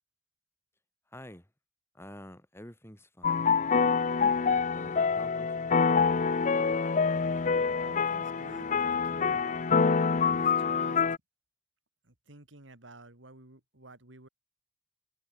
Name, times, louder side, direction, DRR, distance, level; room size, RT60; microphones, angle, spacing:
voice 1, 1.1-1.5 1.9-3.5 4.7-5.7, left 1 dB, 15° left, 5.7 m, -48 dB
sound 1, 3.2-11.2, left 5 dB, 40° left, 0.6 m, -26 dB
voice 2, 7.8-9.4 10.2-11.0 12.0-14.3, right 2 dB, 75° right, 3.2 m, -51 dB
head